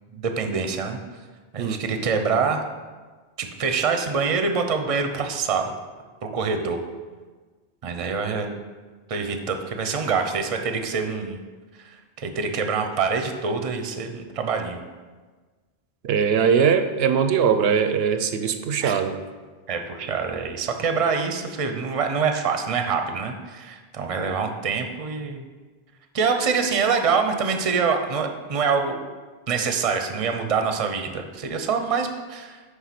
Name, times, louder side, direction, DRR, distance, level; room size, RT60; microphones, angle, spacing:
voice 1, 0.1-1.0 1.5-2.6 3.4-5.7 6.2-6.8 7.8-8.5 9.1-11.4 11.8-11.9 12.2-14.8 18.8-18.9 19.7-25.4 26.1-29.0 29.5-32.6, right 5 dB, 40° right, 5 dB, 0.7 m, -25 dB
voice 2, 16.0-19.2, right 7 dB, 80° right, 8 dB, 0.8 m, -21 dB
9.6 x 3.4 x 5.8 m, 1.4 s
omnidirectional pair, 1.0 m